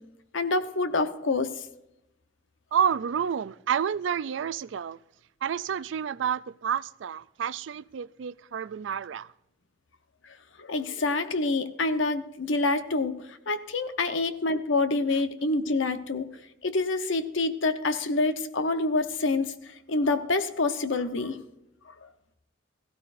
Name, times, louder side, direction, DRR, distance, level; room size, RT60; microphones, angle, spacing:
voice 1, 0.3-1.7 10.6-16.3 16.6-21.4 22.0-22.1, left 3 dB, 80° left, 0.9 m, -27 dB
voice 2, 2.7-5.0 5.4-9.3, right 8 dB, 70° right, 0.4 m, -29 dB
17.0 x 15.5 x 2.6 m
head